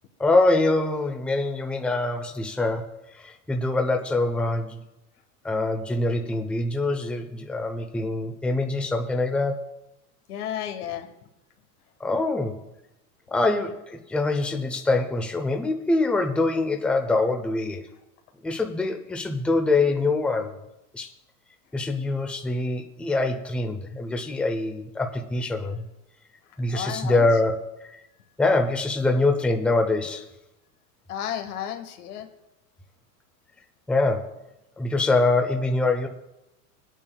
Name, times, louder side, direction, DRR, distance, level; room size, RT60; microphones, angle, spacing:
voice 1, 0.2-4.8 5.4-9.7 12.0-12.6 13.3-17.8 18.4-20.5 20.9-21.1 21.7-25.8 26.6-27.9 28.4-30.3 33.9-34.3 34.8-36.1, left 2 dB, 5° left, 4 dB, 0.6 m, -24 dB
voice 2, 10.3-11.1 17.0-17.1 26.7-27.3 31.1-32.3, left 10 dB, 90° left, 6 dB, 1.4 m, -33 dB
23.5 x 9.0 x 2.2 m, 0.91 s
supercardioid pair, 135°, 44 cm